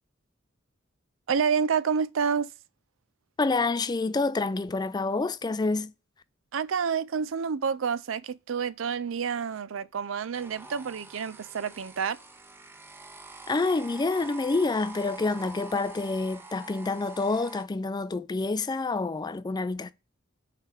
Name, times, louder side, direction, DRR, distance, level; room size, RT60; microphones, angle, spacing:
voice 1, 1.3-2.5 6.5-12.2, right 6 dB, 80° right, 0.5 m, -28 dB
voice 2, 3.4-5.9 13.5-19.9, left 3 dB, 20° left, 0.4 m, -28 dB
sound 1, 10.3-17.7, right 3 dB, 10° right, 0.7 m, -45 dB
5.7 x 3.4 x 5.8 m
head